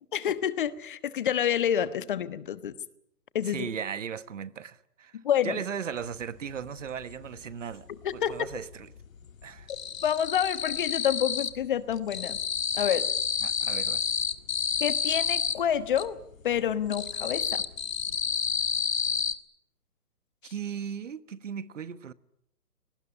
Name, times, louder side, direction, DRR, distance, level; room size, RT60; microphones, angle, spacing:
voice 1, 0.1-2.7 3.3-3.7 5.2-5.6 8.0-8.3 10.0-12.4 12.7-13.1 14.8-16.2 16.4-17.6 20.4-20.5, left 9 dB, 35° left, 1.3 m, -28 dB
voice 2, 3.4-8.9 9.4-9.7 13.4-14.1 20.5-22.1, right 7 dB, 50° right, 1.3 m, -37 dB
sound 1, 6.1-6.2 6.5-7.8 8.0-8.7 9.0-11.7 11.9-16.1 16.5-19.3, left 6 dB, 60° left, 1.8 m, -30 dB
25.0 x 19.0 x 9.9 m
hypercardioid pair, 150°, 46 cm